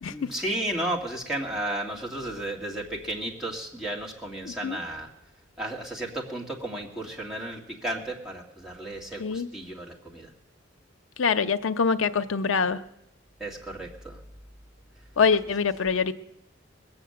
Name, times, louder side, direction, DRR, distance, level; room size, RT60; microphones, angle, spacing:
voice 1, 0.1-5.1 5.6-10.3 13.4-14.2, right 1 dB, ahead, -3 dB, 2.2 m, -33 dB
voice 2, 4.4-4.8 9.2-9.5 11.2-12.8 15.2-16.1, left 5 dB, 85° left, 10 dB, 0.7 m, -24 dB
20.5 x 7.2 x 7.8 m, 0.85 s
head